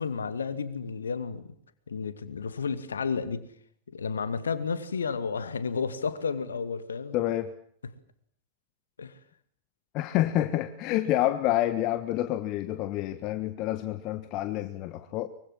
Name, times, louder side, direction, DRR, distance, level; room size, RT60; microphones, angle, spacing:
voice 1, 0.0-1.5 1.9-3.4 3.9-7.2 9.0-9.1, left 5 dB, 70° left, 2.2 m, -32 dB
voice 2, 7.1-7.5 9.9-15.3, left 14 dB, 40° left, 1.5 m, -28 dB
24.5 x 24.0 x 7.6 m
figure-of-eight pair, 90°, 0 cm